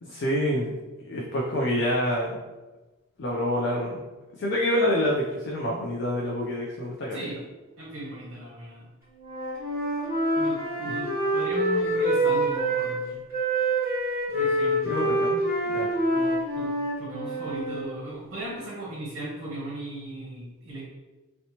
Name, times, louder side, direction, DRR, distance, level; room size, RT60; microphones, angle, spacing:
voice 1, 0.0-0.7 1.0-2.4 3.2-4.0 4.4-7.3 10.8-11.0 14.8-15.4 15.7-15.9, left 1 dB, 55° left, -3 dB, 0.3 m, -27 dB
voice 2, 7.8-8.8 10.3-13.2 14.3-14.9 16.1-16.7 17.0-20.8, right 1 dB, 60° right, -5 dB, 0.7 m, -37 dB
Wind instrument woodwind instrument, 9.2-13.0 13.3-17.8, right 1 dB, 10° right, 1.2 m, -26 dB
2.8 x 2.1 x 2.8 m, 1.2 s
head